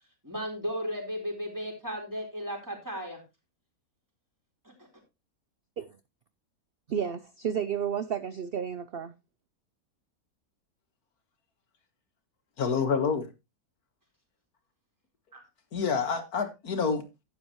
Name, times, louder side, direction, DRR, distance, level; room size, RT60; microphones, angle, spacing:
voice 1, 0.2-3.2 15.3-15.4, equal, 10° right, 4.2 m, -35 dB
voice 2, 6.9-9.1, right 8 dB, 55° right, 0.7 m, -31 dB
voice 3, 12.6-13.3 15.7-17.0, left 5 dB, 90° left, 2.1 m, -27 dB
12.0 x 9.4 x 3.1 m
omnidirectional pair, 1.5 m